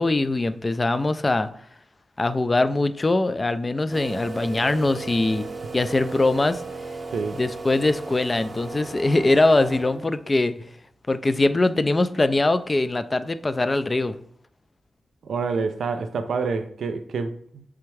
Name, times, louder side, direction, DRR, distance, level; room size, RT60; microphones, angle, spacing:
voice 1, 0.0-1.5 2.2-5.4 5.7-6.6 7.3-10.7 11.1-14.2, left 2 dB, 35° left, 0.3 m, -22 dB
sound 1, 3.9-10.2, right 3 dB, 45° right, 0.7 m, -36 dB
voice 2, 15.2-17.6, right 4 dB, 80° right, 0.3 m, -27 dB
3.4 x 3.3 x 3.2 m
cardioid pair, 50°, 0 cm